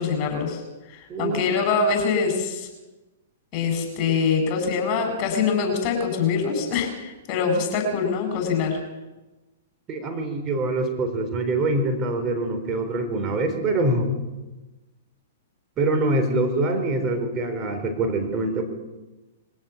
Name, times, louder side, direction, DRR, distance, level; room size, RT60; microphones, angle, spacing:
voice 1, 0.0-2.7 3.5-8.8, left 5 dB, 40° left, 5 dB, 7.5 m, -24 dB
voice 2, 1.1-1.4 4.1-4.2 9.9-14.1 15.8-18.6, right 2 dB, 30° right, 6 dB, 4.0 m, -24 dB
23.0 x 16.5 x 7.2 m, 1.1 s
hypercardioid pair, 115°, 0 cm